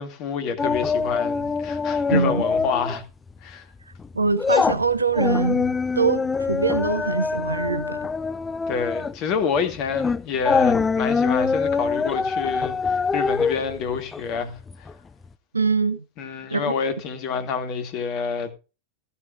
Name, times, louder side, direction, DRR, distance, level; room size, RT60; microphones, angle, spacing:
voice 1, 0.0-3.0 3.4-3.6 8.7-14.6 16.2-18.5, left 6 dB, 40° left, 2.4 m, -27 dB
sound 1, 0.6-3.0 3.3-3.5 3.9-14.9 15.2-15.3, left 5 dB, 15° left, 0.5 m, -24 dB
voice 2, 2.1-2.4 4.1-8.1 15.5-16.0 16.5-16.8, right 4 dB, 80° right, 0.7 m, -23 dB
14.5 x 14.0 x 2.5 m
figure-of-eight pair, 90°, 0 cm